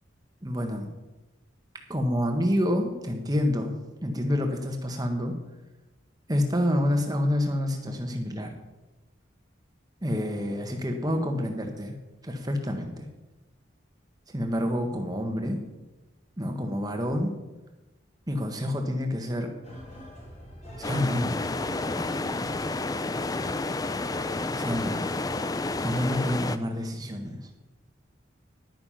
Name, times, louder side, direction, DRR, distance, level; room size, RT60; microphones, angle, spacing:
voice 1, 0.4-0.9 1.9-3.7 4.0-5.4 6.3-8.5 10.0-11.9 12.2-13.1 14.3-15.6 16.4-17.3 18.3-19.5 20.8-21.4 21.9-22.2 24.5-25.2 25.8-27.4, left 1 dB, 20° right, 4 dB, 1.5 m, -28 dB
sound 1, 19.6-25.9, left 1 dB, 35° left, 4.4 m, -44 dB
sound 2, 20.8-26.6, left 2 dB, 20° left, 0.4 m, -30 dB
11.0 x 9.9 x 5.7 m, 1.1 s
head